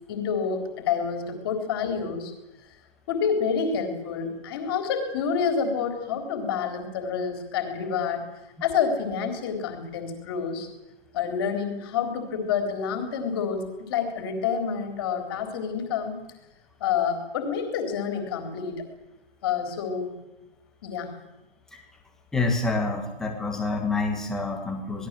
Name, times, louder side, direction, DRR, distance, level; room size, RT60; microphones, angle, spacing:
voice 1, 0.1-2.3 3.1-8.2 8.6-10.7 11.1-16.2 16.8-18.8 19.4-20.1 20.8-21.2, left 6 dB, 25° left, 5 dB, 3.9 m, -28 dB
voice 2, 22.3-25.1, left 3 dB, ahead, 1 dB, 1.7 m, -27 dB
27.0 x 20.5 x 7.7 m, 0.95 s
hypercardioid pair, 170°, 30 cm